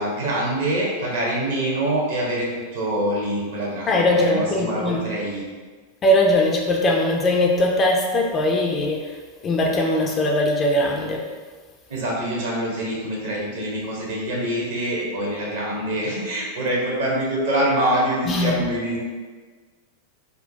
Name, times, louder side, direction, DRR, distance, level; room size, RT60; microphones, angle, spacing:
voice 1, 0.0-2.5 2.7-5.4 11.9-19.0, right 1 dB, 55° right, -3 dB, 0.9 m, -25 dB
voice 2, 3.8-5.1 6.0-9.2 9.4-11.3 18.3-18.6, left 1 dB, 25° left, 1 dB, 0.4 m, -20 dB
3.6 x 2.2 x 2.7 m, 1.4 s
figure-of-eight pair, 90°, 0 cm